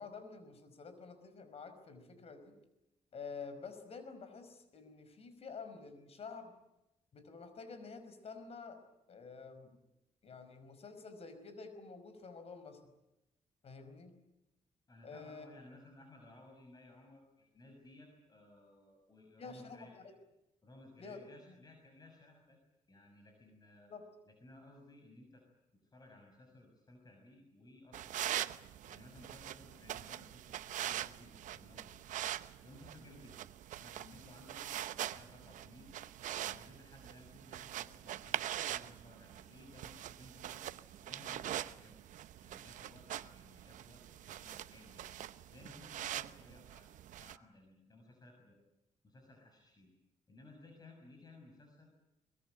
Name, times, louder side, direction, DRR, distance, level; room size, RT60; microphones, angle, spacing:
voice 1, 0.0-2.6 3.1-6.5 7.1-9.8 10.2-12.8 13.6-14.1 15.0-15.5 19.4-20.0 21.0-21.5 23.9-24.1 34.2-34.3, left 4 dB, 50° left, 9 dB, 5.3 m, -49 dB
voice 2, 14.9-19.9 20.6-22.6 22.9-23.9 24.2-25.4 25.8-28.3 28.8-32.2 32.6-33.4 33.8-36.0 36.4-40.6 41.0-42.0 42.4-45.1 45.5-46.9 47.2-48.6 49.0-49.9 50.3-51.9, left 2 dB, 30° left, 2 dB, 6.4 m, -58 dB
sound 1, 27.9-47.4, right 12 dB, 85° right, 0.9 m, -43 dB
23.0 x 22.0 x 9.0 m, 0.90 s
cardioid pair, 105°, 13 cm